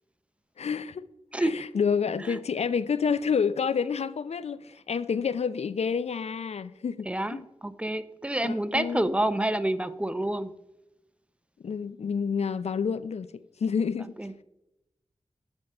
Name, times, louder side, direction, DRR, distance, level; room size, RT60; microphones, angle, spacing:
voice 1, 0.6-1.0 1.4-7.4 8.4-9.1 11.6-14.1, left 6 dB, 70° left, 0.4 m, -29 dB
voice 2, 7.1-10.5 14.2-14.3, right 1 dB, 10° right, 0.6 m, -28 dB
8.8 x 3.7 x 5.3 m
cardioid pair, 45°, 11 cm